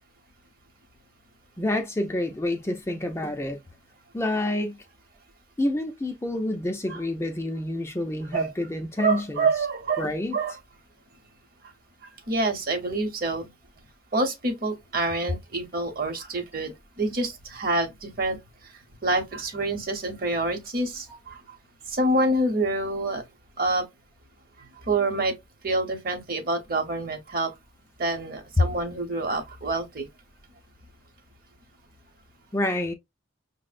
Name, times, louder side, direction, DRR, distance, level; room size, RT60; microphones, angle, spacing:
voice 1, 1.6-3.6 4.1-4.8 5.6-9.5 10.0-10.4 28.6-28.7 32.5-32.9, left 1 dB, 15° left, 0.3 m, -27 dB
voice 2, 9.0-10.5 12.3-13.5 14.1-18.4 19.0-21.6 21.9-23.2 23.6-23.9 24.9-25.3 25.6-27.5 28.0-30.1, right 2 dB, 45° right, 0.8 m, -27 dB
5.9 x 2.0 x 2.4 m
head